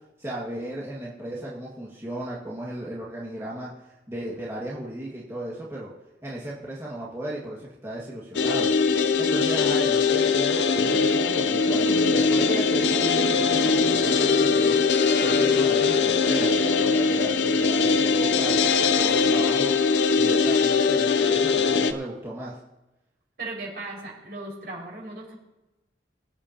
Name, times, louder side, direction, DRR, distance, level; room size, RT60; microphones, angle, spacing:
voice 1, 0.2-5.9 6.2-8.7 9.2-14.8 15.2-19.7 20.2-22.6, right 1 dB, 15° right, -6 dB, 1.8 m, -35 dB
sound 1, 8.3-21.9, left 5 dB, 75° left, 0.6 m, -21 dB
sound 2, 11.6-17.9, equal, 60° left, 1.7 m, -35 dB
voice 2, 23.4-25.3, right 2 dB, 60° right, -3 dB, 5.2 m, -37 dB
23.5 x 8.8 x 2.9 m, 1.0 s
head